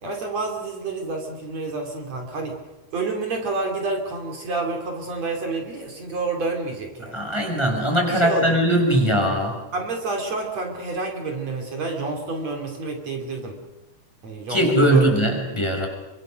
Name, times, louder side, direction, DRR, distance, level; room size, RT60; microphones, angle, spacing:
voice 1, 0.0-2.6 2.9-7.3 8.1-8.6 9.7-13.6 14.2-15.1, right 3 dB, 55° right, 2 dB, 4.1 m, -29 dB
voice 2, 7.1-9.6 14.5-15.9, right 1 dB, 10° left, 2 dB, 5.3 m, -20 dB
29.0 x 24.5 x 6.4 m, 1.1 s
omnidirectional pair, 3.6 m